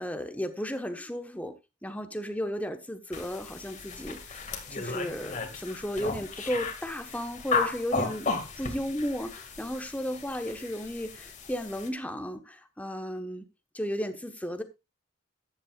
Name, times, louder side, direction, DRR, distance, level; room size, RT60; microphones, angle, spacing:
voice 1, 0.0-1.5 1.8-4.4 4.7-8.3 8.6-13.5 13.7-14.6, equal, 10° left, 1.2 m, -34 dB
sound 1, 3.1-11.9, left 4 dB, 40° left, 2.1 m, -35 dB
14.0 x 10.0 x 2.4 m
head